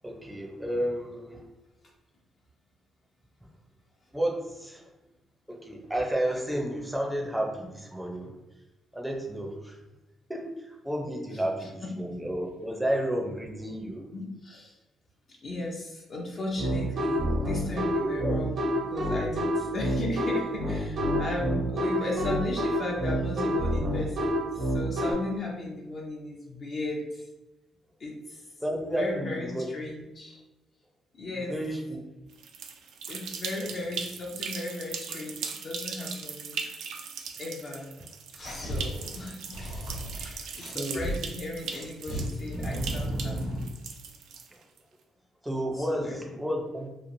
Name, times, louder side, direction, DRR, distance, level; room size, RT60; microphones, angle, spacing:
voice 1, 0.0-1.4 4.1-4.8 5.5-8.4 8.9-9.8 10.3-14.1 18.0-18.4 28.6-29.7 31.4-32.0 33.6-33.7 40.7-41.0 45.4-46.9, right 1 dB, 5° right, 0 dB, 0.5 m, -31 dB
voice 2, 11.3-11.9 14.1-14.8 15.3-27.3 28.0-28.5 29.0-30.4 31.1-31.5 33.1-36.6 37.4-37.9 38.3-43.6 45.7-46.2, left 2 dB, 50° left, -3 dB, 0.6 m, -36 dB
sound 1, 16.6-25.1, equal, 65° right, 0.8 m, -27 dB
sound 2, 32.3-44.8, right 6 dB, 80° right, 0.4 m, -39 dB
sound 3, 38.3-41.2 41.6-43.7, right 1 dB, 70° left, 1.1 m, -34 dB
3.0 x 2.4 x 2.5 m, 1.0 s
cardioid pair, 90°, 0 cm